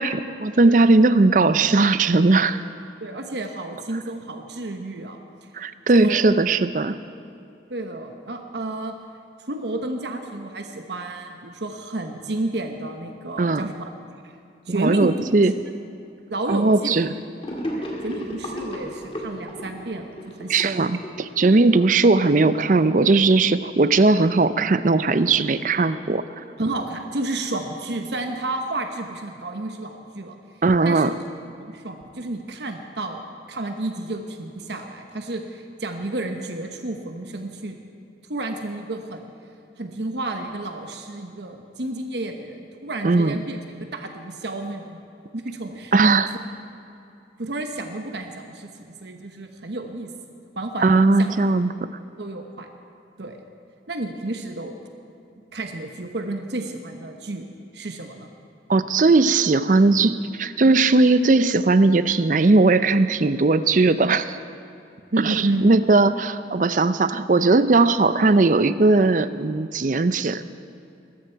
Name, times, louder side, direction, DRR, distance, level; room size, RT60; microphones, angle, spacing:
voice 1, 0.0-2.6 5.5-7.0 13.4-13.7 14.7-15.5 16.5-17.1 20.5-26.2 30.6-31.1 43.0-43.4 45.9-46.4 50.8-51.7 58.7-64.4 65.2-70.5, right 3 dB, 45° right, 13 dB, 0.5 m, -18 dB
voice 2, 3.0-5.2 5.9-6.2 7.7-8.9 9.5-13.9 14.2-14.3 14.7-15.1 15.4-15.5 16.3-16.9 17.7-20.9 21.8-21.9 26.6-30.4 30.8-31.1 31.6-37.8 38.3-39.3 39.8-45.0 45.3-45.9 47.4-50.1 50.6-51.3 52.2-52.7 53.2-53.4 53.9-54.7 55.5-57.5 57.7-58.3 65.1-65.6, right 2 dB, 70° right, 4 dB, 1.1 m, -31 dB
Gurgling / Sink (filling or washing), 17.4-21.9, equal, 30° left, 2.3 m, -33 dB
21.0 x 13.5 x 4.6 m, 2.7 s
head